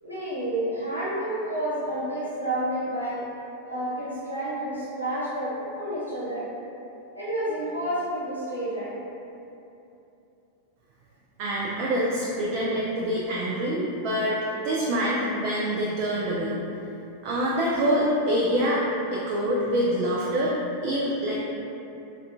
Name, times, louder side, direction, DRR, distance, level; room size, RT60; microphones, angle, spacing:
voice 1, 0.0-3.2 3.6-6.5 7.1-8.9, right 1 dB, 85° right, -10 dB, 0.9 m, -30 dB
voice 2, 11.4-14.4 14.6-16.5 17.2-18.8 19.1-21.4, equal, 45° right, -5 dB, 0.3 m, -25 dB
3.7 x 2.3 x 2.3 m, 2.8 s
figure-of-eight pair, 90°, 0 cm